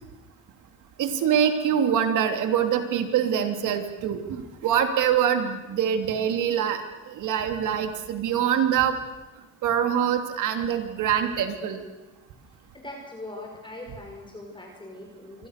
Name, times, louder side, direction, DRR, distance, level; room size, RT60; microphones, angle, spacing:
voice 1, 1.0-9.0 9.6-11.8, right 8 dB, 85° right, 7 dB, 3.1 m, -24 dB
voice 2, 12.7-15.5, left 2 dB, 15° left, 1 dB, 5.7 m, -41 dB
27.0 x 24.5 x 6.7 m, 1.2 s
cardioid pair, 90°, 30 cm